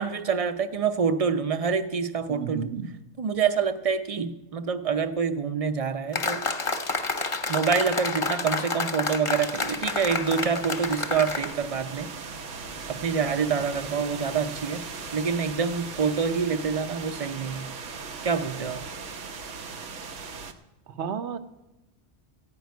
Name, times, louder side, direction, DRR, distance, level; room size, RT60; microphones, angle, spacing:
voice 1, 0.0-2.6 3.2-6.4 7.5-12.1 12.9-14.8 15.1-17.7 18.2-18.8, right 6 dB, 35° right, 10 dB, 0.7 m, -26 dB
voice 2, 2.3-2.9 21.0-21.4, right 7 dB, 70° right, 10 dB, 1.1 m, -31 dB
sound 1, 6.1-11.5, left 3 dB, 30° left, 0.8 m, -29 dB
sound 2, 9.4-20.5, right 4 dB, 90° right, 1.3 m, -39 dB
15.0 x 5.5 x 9.3 m, 1.0 s
omnidirectional pair, 1.2 m